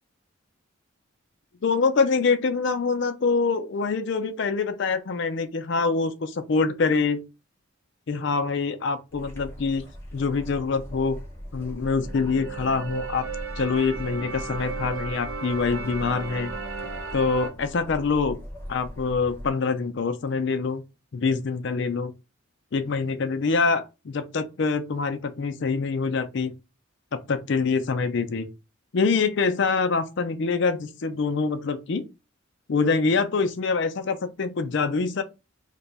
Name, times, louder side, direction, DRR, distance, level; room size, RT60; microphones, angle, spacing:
voice 1, 1.6-7.2 8.1-9.8 10.1-11.2 11.5-13.2 13.6-16.5 17.1-18.4 18.7-20.8 21.1-22.1 22.7-26.6 27.1-28.5 28.9-32.0 32.7-35.2, left 4 dB, 55° left, 0.4 m, -25 dB
sound 1, 9.1-19.5, equal, 10° left, 0.7 m, -40 dB
sound 2, 12.0-17.5, right 5 dB, 80° right, 0.7 m, -35 dB
2.8 x 2.2 x 4.0 m
head